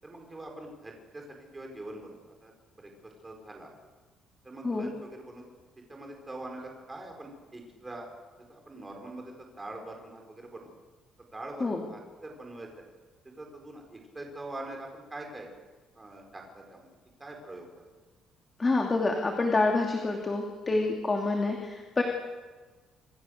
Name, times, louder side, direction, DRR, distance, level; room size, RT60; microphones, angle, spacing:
voice 1, 0.0-1.2 1.5-2.9 3.2-3.7 4.4-5.4 5.9-8.1 8.5-10.7 11.3-12.7 13.4-15.5 15.9-16.9 17.2-17.7 20.7-20.9, right 2 dB, 15° right, 1 dB, 4.9 m, -43 dB
voice 2, 18.6-22.0, left 3 dB, 20° left, 1 dB, 2.7 m, -27 dB
27.0 x 27.0 x 6.6 m, 1.3 s
cardioid pair, 170°, 0 cm